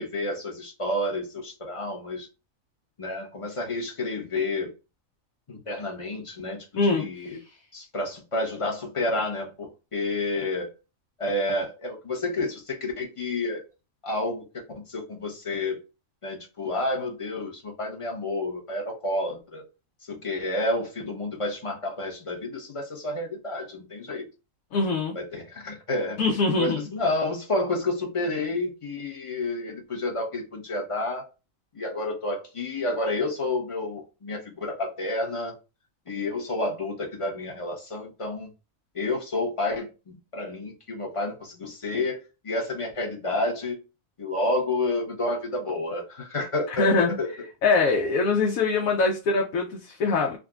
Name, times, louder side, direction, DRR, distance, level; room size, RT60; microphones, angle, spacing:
voice 1, 0.0-2.3 3.0-4.7 5.5-7.4 7.7-10.7 11.2-13.6 14.0-15.8 16.2-19.6 20.1-24.3 25.1-26.2 26.6-31.2 31.7-35.5 36.1-38.5 38.9-42.2 42.4-43.8 44.2-47.3, left 2 dB, 25° left, 0.9 m, -30 dB
voice 2, 6.8-7.4 24.7-25.1 26.2-26.9 46.8-47.2 47.6-50.4, left 3 dB, 80° left, 1.1 m, -23 dB
3.6 x 2.6 x 2.3 m
omnidirectional pair, 1.4 m